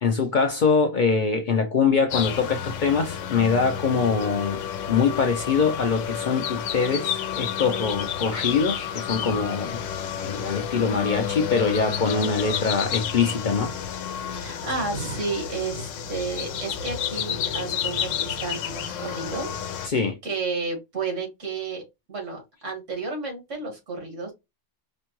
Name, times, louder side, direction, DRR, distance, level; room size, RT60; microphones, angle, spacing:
voice 1, 0.0-4.6 4.9-9.9 10.2-13.7 19.9-20.2, left 5 dB, 50° left, 0.6 m, -23 dB
sound 1, 2.1-19.9, left 9 dB, 90° left, 1.0 m, -30 dB
voice 2, 14.3-19.5 19.8-21.8 22.1-24.3, right 3 dB, 80° right, 2.0 m, -32 dB
5.1 x 2.2 x 3.0 m
omnidirectional pair, 1.3 m